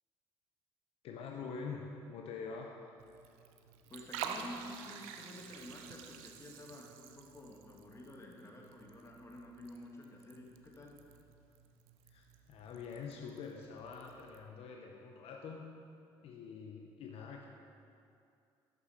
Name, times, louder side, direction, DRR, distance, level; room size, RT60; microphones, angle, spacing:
voice 1, 1.0-2.8 12.1-15.7 16.2-17.5, left 5 dB, 65° left, 1 dB, 0.6 m, -45 dB
Liquid, 3.0-14.4, right 7 dB, 85° right, 0.4 m, -49 dB
voice 2, 3.9-10.9, left 1 dB, 25° left, 0 dB, 1.2 m, -51 dB
6.2 x 6.1 x 4.1 m, 2.5 s
supercardioid pair, 70°, 11 cm